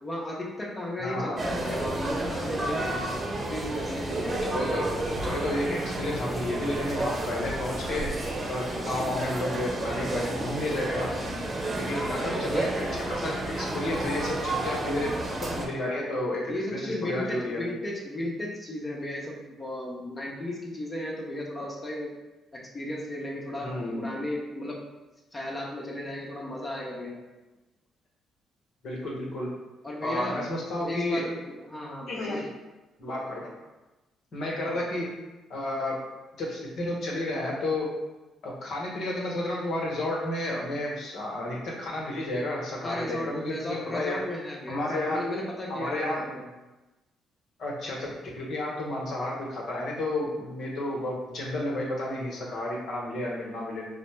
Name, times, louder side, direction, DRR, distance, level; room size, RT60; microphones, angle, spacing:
voice 1, 0.0-4.5 11.9-12.7 14.6-14.8 16.5-22.2 22.5-24.8 25.3-27.2 29.8-30.5 30.8-32.5 34.6-34.8 42.8-46.5, left 1 dB, 35° left, -2 dB, 0.9 m, -35 dB
voice 2, 1.0-1.4 4.4-4.9 5.2-8.1 8.5-11.1 11.8-17.6 23.6-24.1 28.8-29.5 30.0-31.3 32.1-32.5 33.0-33.5 34.3-35.2 35.5-36.0 36.4-37.9 38.4-44.2 44.7-45.2 45.7-46.2 47.6-53.9, left 1 dB, 60° left, -3 dB, 1.1 m, -31 dB
sound 1, 1.4-15.7, right 1 dB, 35° right, 0.9 m, -31 dB
4.9 x 2.1 x 3.2 m, 1.1 s
hypercardioid pair, 50°, 0 cm